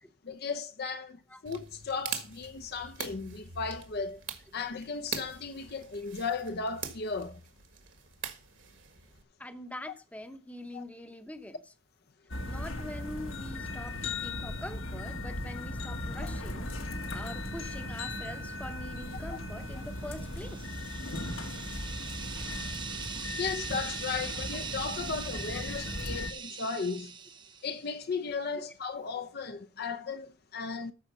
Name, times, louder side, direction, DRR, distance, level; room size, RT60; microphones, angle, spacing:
voice 1, 0.2-4.2 4.5-7.4 10.7-10.8 16.2-16.3 19.3-19.4 23.4-27.2 27.6-30.9, left 5 dB, 50° left, 0.6 m, -36 dB
sound 1, 1.5-9.2, right 7 dB, 65° right, 1.7 m, -43 dB
voice 2, 9.4-11.6 12.5-20.8 28.6-28.7, left 1 dB, 5° left, 0.8 m, -44 dB
sound 2, 12.3-26.3, left 2 dB, 80° left, 1.5 m, -37 dB
sound 3, 20.1-27.9, right 6 dB, 20° right, 0.6 m, -41 dB
13.0 x 5.1 x 5.5 m
head